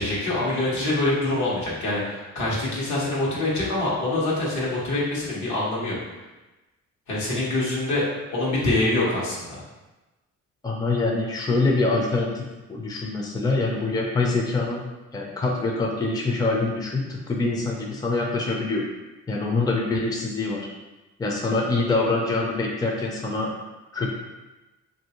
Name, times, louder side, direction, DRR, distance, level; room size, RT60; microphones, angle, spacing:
voice 1, 0.0-6.0 7.1-9.6, left 2 dB, 75° left, -6 dB, 1.2 m, -25 dB
voice 2, 10.6-18.9 19.3-20.7 21.2-23.5 23.9-24.1, left 3 dB, 15° left, -1 dB, 0.5 m, -25 dB
3.0 x 2.6 x 2.9 m, 1.1 s
cardioid pair, 90°, 30 cm